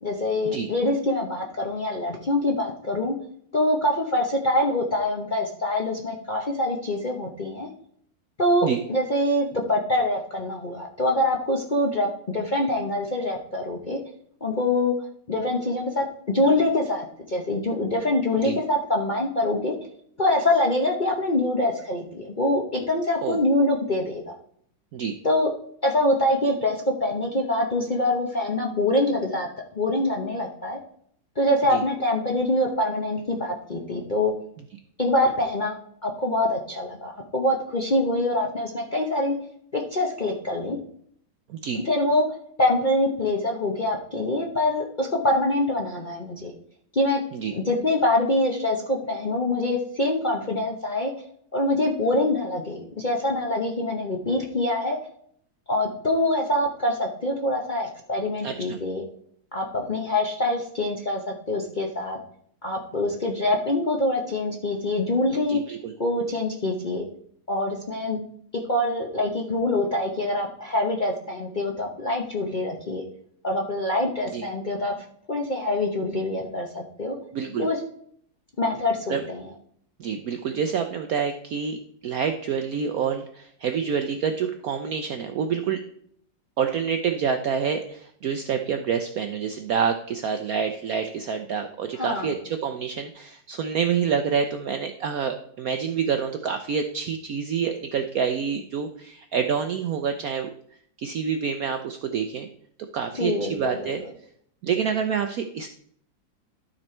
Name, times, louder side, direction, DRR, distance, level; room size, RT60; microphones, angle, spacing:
voice 1, 0.0-3.1 3.5-7.7 8.4-14.0 14.4-14.9 15.3-19.7 20.2-24.3 25.2-25.5 25.8-29.5 29.7-30.8 31.4-34.3 35.0-35.8 36.0-39.4 39.7-40.8 41.8-42.2 42.6-46.5 46.9-47.2 47.5-51.1 51.5-55.0 55.7-59.0 59.5-62.2 62.6-65.6 66.0-67.0 67.5-68.2 68.7-73.0 73.4-74.9 75.3-77.2 77.6-77.8 78.6-79.4 92.0-92.3 103.2-103.9, left 1 dB, 40° left, 0 dB, 0.7 m, -25 dB
voice 2, 41.5-41.8 47.3-47.5 58.4-58.8 65.5-65.9 74.3-74.4 77.3-77.7 79.1-79.2 80.0-81.8 82.0-85.8 86.6-100.5 101.0-102.5 102.9-104.0 104.6-105.7, right 7 dB, 70° right, 7 dB, 0.9 m, -27 dB
12.5 x 4.3 x 4.4 m, 0.65 s
omnidirectional pair, 2.1 m